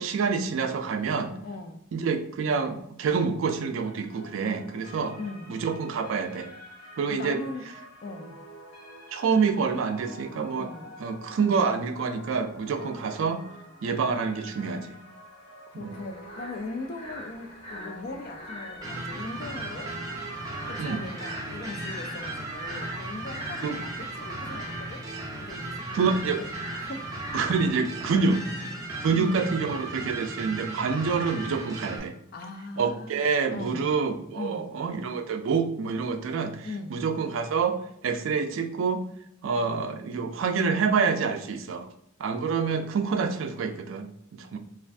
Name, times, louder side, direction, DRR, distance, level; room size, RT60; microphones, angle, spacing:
voice 1, 0.0-1.3 1.9-5.2 5.5-6.5 7.0-7.4 9.1-10.7 11.0-13.4 13.8-15.0 15.7-16.0 20.8-21.0 23.6-23.8 25.9-26.4 27.3-28.4 29.0-32.1 32.8-37.8 38.0-39.0 39.4-41.9 42.2-44.6, right 5 dB, 70° right, 6 dB, 0.3 m, -27 dB
voice 2, 1.4-1.8 5.1-5.5 7.1-7.7 8.0-8.4 10.6-10.9 15.7-19.9 20.6-25.0 25.4-26.5 26.8-27.1 28.1-28.3 29.1-29.5 32.3-33.3 33.5-33.9 34.3-34.7 36.6-37.0, left 3 dB, 45° left, 6 dB, 0.3 m, -39 dB
sound 1, 3.7-22.7, equal, 85° left, 1.1 m, -48 dB
sound 2, 15.9-27.7, equal, 30° left, 0.8 m, -44 dB
sound 3, 18.8-32.0, right 2 dB, 20° right, 0.5 m, -36 dB
2.5 x 2.3 x 3.3 m, 0.73 s
head